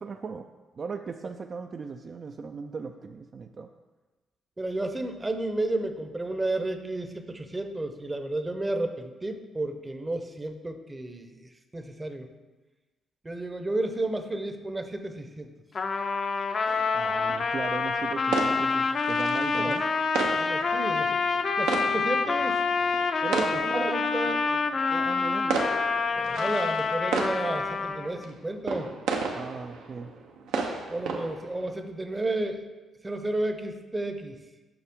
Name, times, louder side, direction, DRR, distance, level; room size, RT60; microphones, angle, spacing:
voice 1, 0.0-0.5 0.8-3.7 16.9-19.9 23.2-23.9 24.3-25.6 29.3-30.1 31.0-31.3, right 5 dB, 45° right, 5 dB, 0.3 m, -37 dB
voice 2, 4.6-12.3 13.2-15.5 19.6-19.8 20.2-22.6 23.6-24.4 26.1-28.9 30.9-32.6 33.0-34.4, right 2 dB, 20° right, 7 dB, 0.7 m, -32 dB
Trumpet, 15.7-28.2, left 4 dB, 40° left, 0.5 m, -27 dB
sound 1, 16.6-31.8, right 4 dB, 90° right, 0.9 m, -35 dB
7.0 x 5.7 x 3.6 m, 1.2 s
cardioid pair, 90°, 0 cm